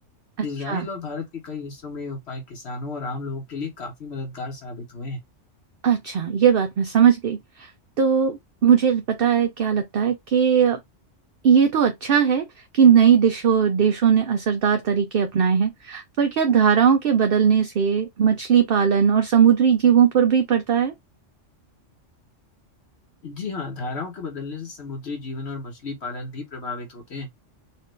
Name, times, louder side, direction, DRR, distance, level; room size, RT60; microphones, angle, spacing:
voice 1, 0.4-5.2 23.2-27.3, left 3 dB, 60° left, 1.3 m, -33 dB
voice 2, 5.8-7.7 8.0-10.8 11.4-12.5 12.7-20.9, right 7 dB, 60° right, 0.7 m, -19 dB
4.4 x 2.5 x 3.1 m
omnidirectional pair, 1.3 m